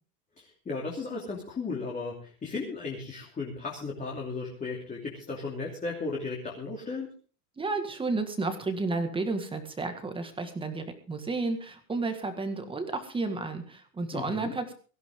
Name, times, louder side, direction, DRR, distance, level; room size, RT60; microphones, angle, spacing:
voice 1, 0.4-7.1 14.1-14.5, left 4 dB, 15° left, -2 dB, 2.9 m, -35 dB
voice 2, 7.6-14.7, right 3 dB, 10° right, 6 dB, 1.8 m, -32 dB
17.5 x 15.5 x 3.7 m, 0.38 s
supercardioid pair, 155°, 47 cm